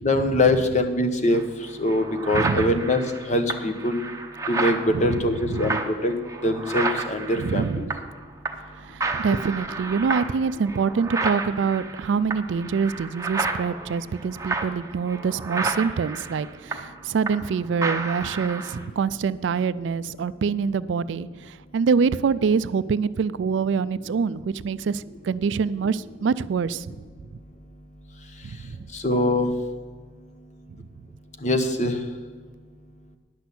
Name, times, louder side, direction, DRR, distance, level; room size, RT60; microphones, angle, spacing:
voice 1, 0.0-1.4 1.8-3.0 3.3-4.0 4.5-6.2 6.4-7.9 9.3-9.4 28.9-29.5 31.4-32.0, left 1 dB, 40° left, 7 dB, 0.9 m, -23 dB
sound 1, 1.3-1.4 1.9-8.2 8.4-8.7 9.0-17.5 17.8-18.8, right 3 dB, 15° right, 0.7 m, -31 dB
voice 2, 2.3-2.8 4.9-5.8 7.4-8.0 8.8-27.0 28.6-28.8, right 5 dB, 70° right, 17 dB, 0.3 m, -25 dB
10.5 x 6.1 x 8.2 m, 1.5 s
head